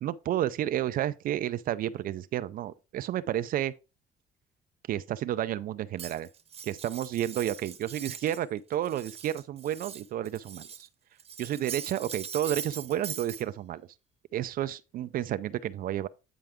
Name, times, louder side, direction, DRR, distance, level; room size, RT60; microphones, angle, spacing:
voice 1, 0.0-3.7 4.9-6.3 6.6-10.9 11.4-13.8 14.3-16.1, right 12 dB, 60° right, 0.5 m, -31 dB
Cutlery silverware, 6.0-8.4 8.7-10.9 11.2-13.4, right 7 dB, 35° right, 0.9 m, -42 dB
9.0 x 4.6 x 3.5 m
cardioid pair, 110°, 17 cm